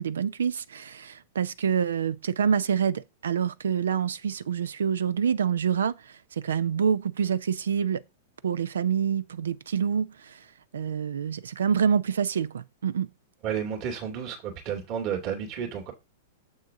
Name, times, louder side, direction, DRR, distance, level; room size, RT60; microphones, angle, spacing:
voice 1, 0.0-5.9 6.4-8.0 8.4-10.3 10.7-13.1, right 7 dB, 75° right, 0.6 m, -26 dB
voice 2, 13.4-15.9, right 8 dB, 40° right, 2.5 m, -31 dB
7.3 x 6.5 x 3.7 m
figure-of-eight pair, 100°, 0 cm